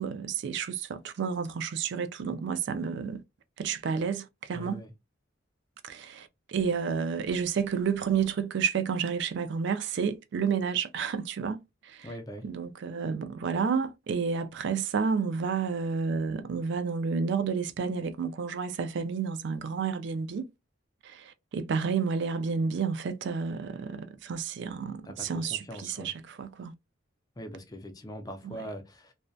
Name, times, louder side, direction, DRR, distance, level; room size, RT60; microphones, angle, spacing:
voice 1, 0.0-3.2 3.6-4.8 5.8-12.1 12.4-20.5 21.0-26.7 28.4-28.7, right 6 dB, 65° right, 0.4 m, -30 dB
voice 2, 4.5-4.9 12.0-12.5 25.0-26.1 27.4-29.1, equal, 20° left, 0.4 m, -42 dB
2.6 x 2.1 x 2.2 m
head